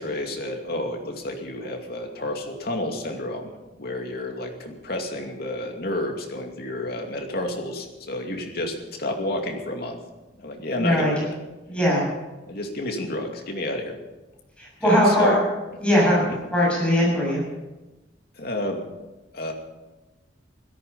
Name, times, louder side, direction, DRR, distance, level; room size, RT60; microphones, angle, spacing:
voice 1, 0.0-3.5 3.8-10.0 10.4-11.4 12.5-14.0 14.8-15.4 16.3-16.4 18.4-18.8 19.3-19.5, left 1 dB, 55° left, 2 dB, 2.6 m, -30 dB
voice 2, 10.8-11.1 11.7-12.0 14.6-15.4 15.8-16.2 16.5-17.4, equal, 5° left, -5 dB, 7.0 m, -20 dB
16.5 x 14.0 x 5.6 m, 1.1 s
head